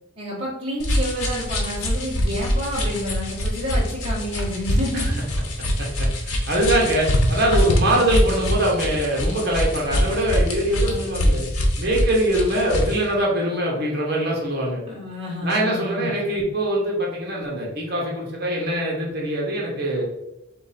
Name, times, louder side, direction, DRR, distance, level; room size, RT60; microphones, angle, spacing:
voice 1, 0.2-5.2 7.8-8.1 10.7-11.3 14.8-16.1, equal, 25° right, -8 dB, 1.4 m, -30 dB
sound 1, 0.8-13.0, equal, 90° left, 0.9 m, -24 dB
voice 2, 5.8-11.4 11.8-14.8 15.4-20.0, right 1 dB, 45° right, -3 dB, 1.2 m, -23 dB
3.7 x 2.9 x 4.2 m, 0.92 s
head